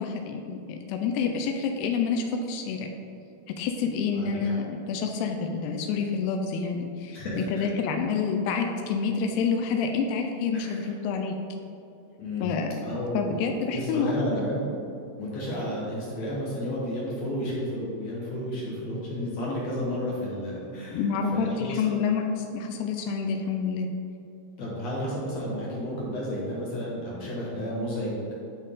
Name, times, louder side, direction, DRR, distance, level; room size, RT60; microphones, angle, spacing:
voice 1, 0.0-2.9 3.6-11.4 12.4-12.7 13.1-14.5 20.9-23.9, left 5 dB, 90° left, 4 dB, 2.6 m, -28 dB
voice 2, 4.1-4.5 7.1-7.7 10.5-10.9 12.2-12.5 12.8-14.8 15.2-21.0 21.3-22.0 24.6-28.4, equal, 65° left, -5 dB, 1.8 m, -32 dB
10.5 x 4.0 x 3.7 m, 2.7 s
omnidirectional pair, 4.6 m